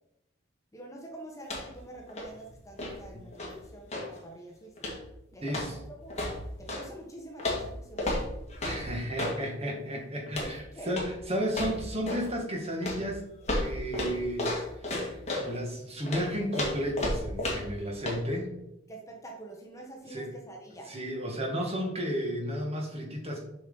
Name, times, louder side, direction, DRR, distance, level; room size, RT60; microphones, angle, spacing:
voice 1, 0.7-4.9 5.3-6.2 6.6-8.3 10.4-10.9 18.9-20.9, right 2 dB, 15° left, 1 dB, 1.1 m, -46 dB
sound 1, 1.4-1.8 2.1-4.2 4.8-5.1 5.5-6.9 7.4-9.4 10.3-10.6 10.9-11.2 11.5-12.3 12.8-15.5 16.1-17.8 18.1-18.2, left 1 dB, 35° left, 2.1 m, -33 dB
voice 2, 8.6-13.2 13.5-18.6 20.1-20.3 20.9-23.5, equal, 30° right, 0 dB, 1.8 m, -33 dB
7.4 x 6.1 x 3.9 m, 0.84 s
head